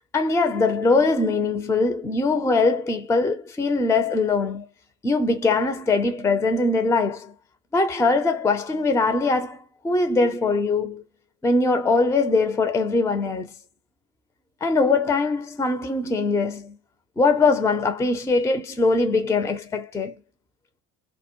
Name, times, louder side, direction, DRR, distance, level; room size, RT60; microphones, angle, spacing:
voice 1, 0.1-4.7 5.0-7.3 7.7-9.6 9.8-11.0 11.4-13.5 14.6-16.8 17.2-20.2, left 3 dB, 5° left, 0.5 m, -22 dB
2.1 x 2.1 x 2.9 m
figure-of-eight pair, 60°, 45 cm